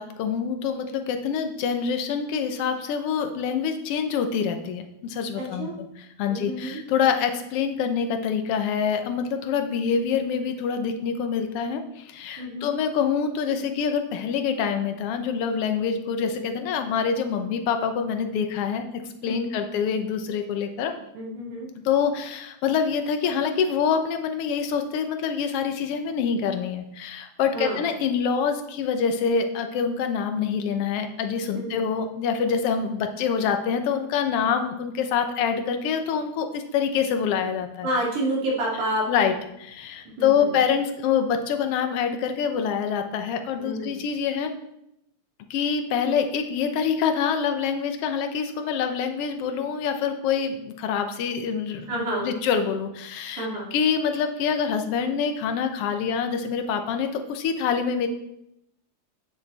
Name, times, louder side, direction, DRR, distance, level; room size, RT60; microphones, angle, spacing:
voice 1, 0.0-20.9 21.8-37.9 39.1-39.3 39.6-44.5 45.5-58.1, left 6 dB, 65° left, 7 dB, 1.6 m, -26 dB
voice 2, 5.4-5.8 6.3-6.8 12.4-12.8 19.2-19.7 21.1-21.7 27.5-27.8 31.6-31.8 37.8-39.0 40.2-40.6 43.6-44.0 51.9-52.4 53.4-53.7, right 1 dB, 85° right, -4 dB, 4.1 m, -29 dB
9.5 x 8.4 x 4.2 m, 0.82 s
omnidirectional pair, 3.4 m